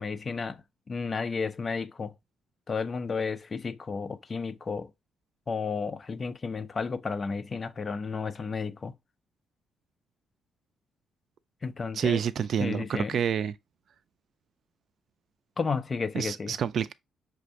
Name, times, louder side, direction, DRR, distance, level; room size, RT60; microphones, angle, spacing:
voice 1, 0.0-2.1 2.7-4.9 5.5-8.9 11.6-12.2 12.6-13.2 15.6-16.6, left 5 dB, 30° left, 0.5 m, -32 dB
voice 2, 11.9-13.5 16.1-16.9, right 8 dB, 50° right, 0.4 m, -28 dB
5.8 x 2.6 x 3.0 m
cardioid pair, 140°, 0 cm